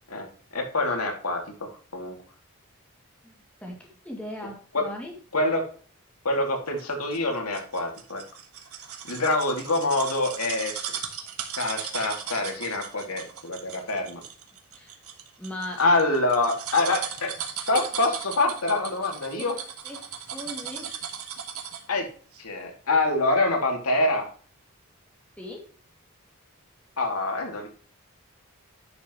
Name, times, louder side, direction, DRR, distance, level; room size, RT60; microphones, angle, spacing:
voice 1, 0.5-2.2 4.7-4.9 5.3-5.6 6.2-8.2 9.1-11.2 11.6-14.2 15.8-17.3 17.7-19.5 21.9-22.1 22.4-24.3 27.0-27.7, left 2 dB, 90° left, 2 dB, 2.6 m, -26 dB
voice 2, 3.2-5.2 14.7-15.0 15.4-15.8 17.6-17.7 19.4-19.5 19.8-20.9 25.4-25.7, left 1 dB, 5° left, -1 dB, 2.3 m, -39 dB
sound 1, 6.8-22.0 22.3-22.4, right 8 dB, 85° right, 1.4 m, -37 dB
11.0 x 5.9 x 3.0 m, 0.42 s
head